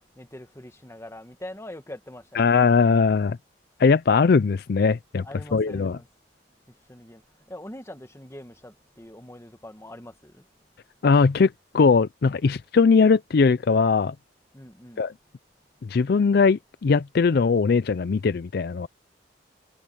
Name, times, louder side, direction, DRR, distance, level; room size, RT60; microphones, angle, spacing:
voice 1, 0.1-2.5 5.2-6.1 6.7-10.4 14.5-15.0, left 1 dB, 15° left, 1.6 m, -43 dB
voice 2, 2.4-3.4 3.8-5.2 5.5-6.0 11.0-14.1 15.0-15.1 15.8-18.9, left 5 dB, 60° left, 0.4 m, -20 dB
head